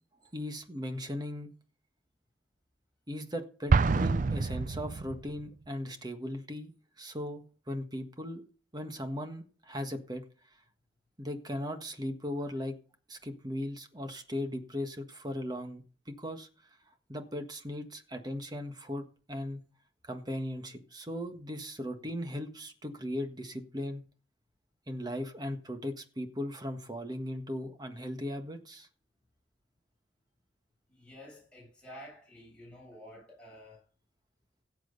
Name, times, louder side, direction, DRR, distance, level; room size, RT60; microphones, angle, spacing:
voice 1, 0.3-1.5 3.1-6.7 7.0-8.4 8.7-10.2 11.2-12.8 13.1-16.5 17.1-19.6 20.0-24.0 24.9-28.9, left 1 dB, 25° right, 1.6 m, -38 dB
Explosion, 3.7-5.5, right 4 dB, 45° right, 0.4 m, -27 dB
voice 2, 30.9-33.8, equal, 5° left, 7.9 m, -51 dB
17.0 x 7.7 x 4.0 m
head